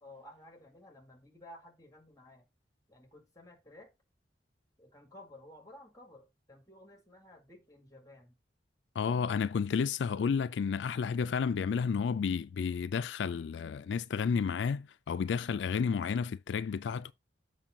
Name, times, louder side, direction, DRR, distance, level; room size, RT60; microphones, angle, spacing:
voice 1, 0.0-2.5 2.9-3.9 4.8-8.4, left 1 dB, 20° left, 2.0 m, -55 dB
voice 2, 9.0-17.1, left 6 dB, 80° left, 0.4 m, -31 dB
7.4 x 5.1 x 3.7 m
head